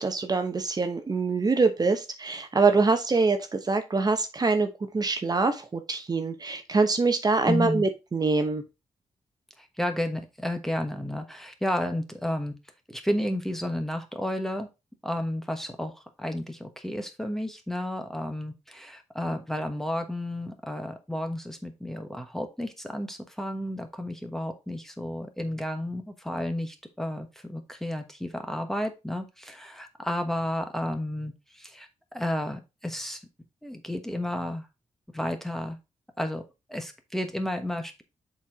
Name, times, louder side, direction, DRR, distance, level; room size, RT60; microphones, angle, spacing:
voice 1, 0.0-4.7 4.9-8.6, right 4 dB, 35° right, 7 dB, 1.0 m, -24 dB
voice 2, 7.5-7.9 9.6-12.5 12.9-14.7 15.0-33.2 33.6-34.7 35.1-35.8 36.2-36.4 36.7-38.0, left 1 dB, 5° left, 6 dB, 1.2 m, -32 dB
7.3 x 4.5 x 3.5 m, 0.25 s
wide cardioid pair, 120°, 12 cm